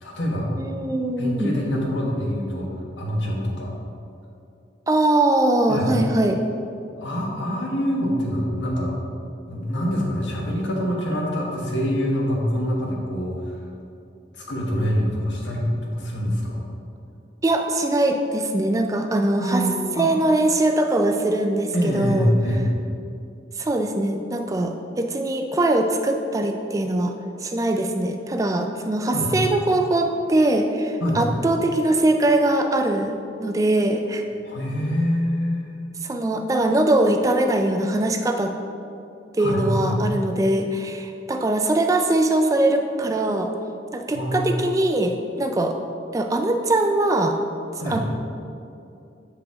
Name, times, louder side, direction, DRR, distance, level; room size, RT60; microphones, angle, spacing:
voice 1, 0.0-0.5 1.2-3.7 5.7-5.9 7.0-9.0 9.5-13.6 14.3-16.6 19.4-20.1 21.7-22.7 29.1-29.3 31.0-31.2 34.4-35.9 39.4-40.0 44.1-44.5 47.8-48.0, equal, 80° left, -2 dB, 1.3 m, -25 dB
voice 2, 0.6-1.6 4.9-6.4 17.4-19.7 20.0-22.3 23.6-27.1 27.4-33.1 33.4-34.2 36.0-38.5 39.3-43.5 43.9-45.8 46.1-47.4 47.9-48.0, right 1 dB, 20° right, 5 dB, 0.3 m, -21 dB
7.5 x 4.9 x 3.5 m, 2.7 s
head